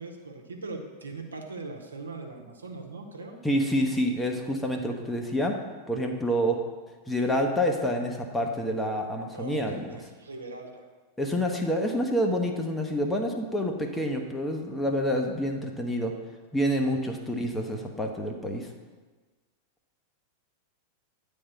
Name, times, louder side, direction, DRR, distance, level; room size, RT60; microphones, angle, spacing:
voice 1, 0.0-3.4 9.3-10.8, right 3 dB, 75° right, 2 dB, 1.1 m, -40 dB
voice 2, 3.4-5.6 5.9-6.6 7.1-10.0 11.2-16.2 16.5-18.7, equal, 10° left, 2 dB, 1.0 m, -28 dB
9.8 x 3.6 x 6.7 m, 1.3 s
figure-of-eight pair, 90°, 0 cm